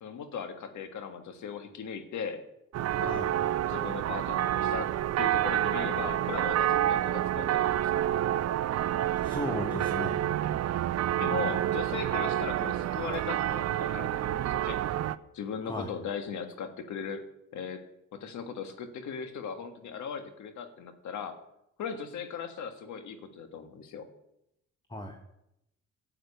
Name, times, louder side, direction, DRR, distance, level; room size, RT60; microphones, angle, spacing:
voice 1, 0.0-2.4 2.9-3.3 3.6-8.0 11.2-14.8 15.3-17.2 17.5-17.8 18.1-21.4 21.8-24.1, left 6 dB, 70° left, 7 dB, 1.7 m, -38 dB
sound 1, 2.7-15.2, right 12 dB, 60° right, 0.6 m, -28 dB
voice 2, 9.1-10.2 15.6-15.9 24.9-25.3, left 1 dB, 15° left, 4 dB, 1.5 m, -36 dB
10.5 x 7.9 x 8.2 m, 0.82 s
cardioid pair, 90°, 30 cm